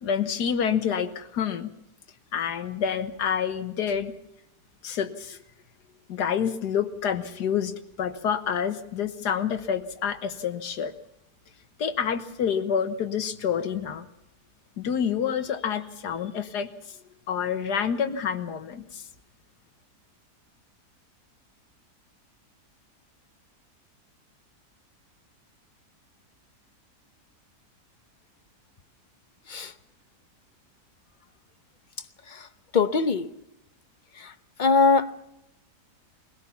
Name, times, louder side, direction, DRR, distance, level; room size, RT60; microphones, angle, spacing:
voice 1, 0.0-1.7 2.3-4.1 4.8-5.4 6.1-10.9 11.8-14.1 14.8-17.0 17.3-19.1, left 7 dB, 85° left, 1.8 m, -28 dB
voice 2, 32.7-33.3 34.6-35.1, left 4 dB, 35° left, 0.9 m, -21 dB
22.0 x 17.0 x 7.1 m
omnidirectional pair, 1.7 m